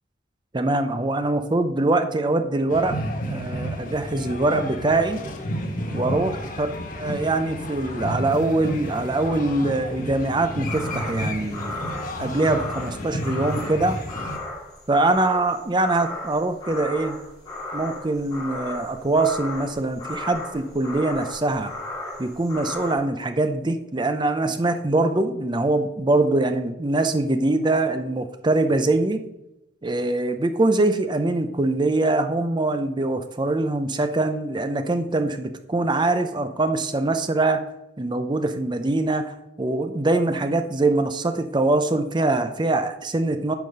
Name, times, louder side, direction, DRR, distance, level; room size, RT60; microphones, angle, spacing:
voice 1, 0.5-3.0 3.2-5.2 5.9-6.7 7.0-11.8 12.2-14.0 14.9-17.2 17.7-21.7 22.2-29.2 29.8-37.6 38.0-43.5, right 2 dB, 25° right, 9 dB, 0.6 m, -23 dB
sound 1, 2.7-14.4, equal, 50° left, 1.1 m, -31 dB
sound 2, 10.7-22.9, left 2 dB, 25° left, 3.0 m, -35 dB
9.4 x 5.1 x 5.4 m, 0.90 s
head